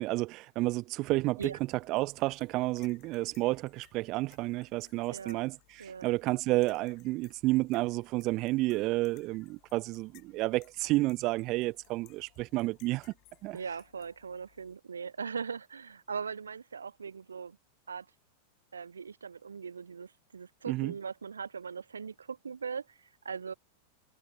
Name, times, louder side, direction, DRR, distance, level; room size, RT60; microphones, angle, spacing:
voice 1, 0.0-1.5 1.9-13.1 13.4-13.6 20.7-20.9, right 20 dB, 40° right, 0.7 m, -31 dB
sound 1, 1.3-14.8, left 23 dB, 40° left, 4.8 m, -64 dB
voice 2, 5.8-6.1 13.5-17.6 17.9-18.1 18.7-23.5, right 6 dB, 70° right, 2.6 m, -40 dB
figure-of-eight pair, 90°, 0 cm